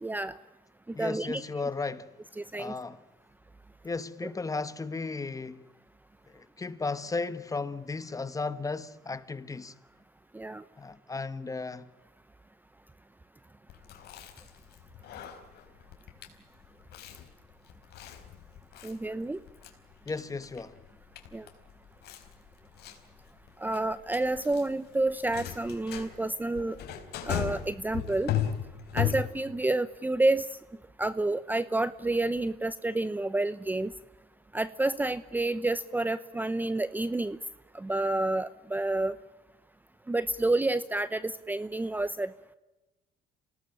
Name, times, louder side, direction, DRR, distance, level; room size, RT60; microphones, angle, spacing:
voice 1, 0.0-0.3 1.0-1.4 2.4-2.7 10.3-10.6 18.8-19.4 21.3-21.5 23.6-26.8 27.2-28.3 28.9-30.5 31.0-33.9 34.5-37.4 37.7-39.2 40.1-42.6, right 2 dB, 10° right, 0.8 m, -29 dB
voice 2, 0.9-2.1 2.5-3.0 3.8-5.7 6.3-9.7 10.8-11.9 20.0-20.8, left 3 dB, 20° left, 1.4 m, -35 dB
Chewing mastication, 13.7-29.6, left 10 dB, 75° left, 4.2 m, -37 dB
27.5 x 18.5 x 8.8 m
cardioid pair, 110°, 17 cm